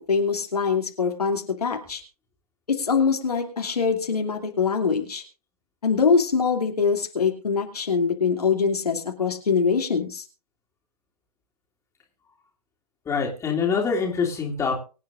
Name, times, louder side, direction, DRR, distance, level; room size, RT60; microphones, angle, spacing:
voice 1, 0.0-2.0 2.7-5.2 5.8-10.2, left 5 dB, 75° left, 2 dB, 2.5 m, -23 dB
voice 2, 13.1-14.8, left 5 dB, 15° left, -1 dB, 2.8 m, -25 dB
24.0 x 8.5 x 2.5 m, 0.35 s
figure-of-eight pair, 120°, 20 cm